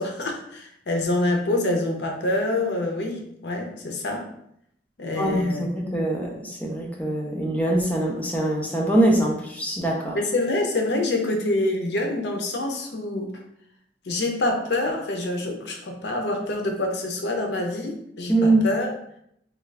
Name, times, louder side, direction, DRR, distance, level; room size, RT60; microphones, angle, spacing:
voice 1, 0.0-4.3 5.0-5.7 10.1-13.3 14.1-18.9, left 2 dB, 75° left, 3 dB, 0.6 m, -26 dB
voice 2, 5.2-10.2 18.3-18.7, right 1 dB, 10° left, -2 dB, 0.5 m, -23 dB
3.6 x 2.3 x 3.3 m, 0.73 s
head